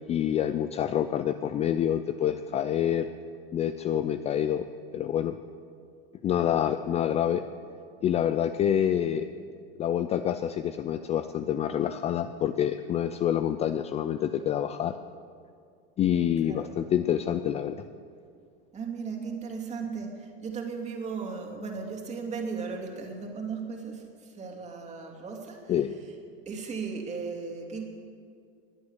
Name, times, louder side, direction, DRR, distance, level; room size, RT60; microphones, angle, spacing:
voice 1, 0.1-3.1 3.5-4.7 4.9-5.4 6.2-7.4 8.0-9.3 9.8-15.0 16.0-17.8 25.7-25.9, left 10 dB, 20° left, 10 dB, 0.4 m, -27 dB
voice 2, 18.7-25.7 26.5-27.9, right 5 dB, 25° right, 2 dB, 2.6 m, -36 dB
21.0 x 8.6 x 8.0 m, 2.3 s
supercardioid pair, 130°, 30 cm